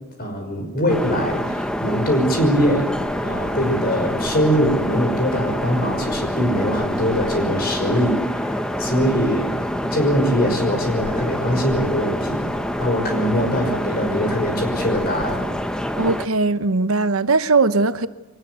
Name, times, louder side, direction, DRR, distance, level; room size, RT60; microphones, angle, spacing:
voice 1, 0.2-2.9 3.2-12.5 12.8-15.5, equal, 45° left, 5.7 m, -22 dB
sound 1, 0.9-16.3, equal, 5° left, 0.9 m, -26 dB
voice 2, 16.0-18.1, right 3 dB, 80° right, 1.0 m, -19 dB
23.5 x 19.5 x 8.3 m
head